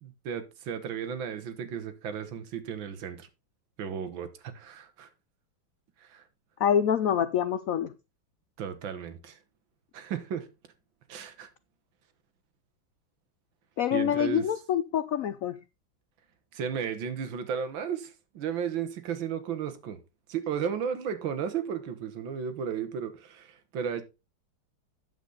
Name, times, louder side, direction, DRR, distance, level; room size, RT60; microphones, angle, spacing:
voice 1, 0.0-3.3 3.8-5.1 6.0-6.2 8.6-9.4 9.9-10.5 11.1-11.5 13.9-14.5 16.5-20.0 20.3-24.0, right 7 dB, 75° right, 1.9 m, -34 dB
voice 2, 6.6-7.9 13.8-15.6, left 9 dB, 85° left, 0.7 m, -26 dB
9.0 x 7.8 x 3.9 m
omnidirectional pair, 2.1 m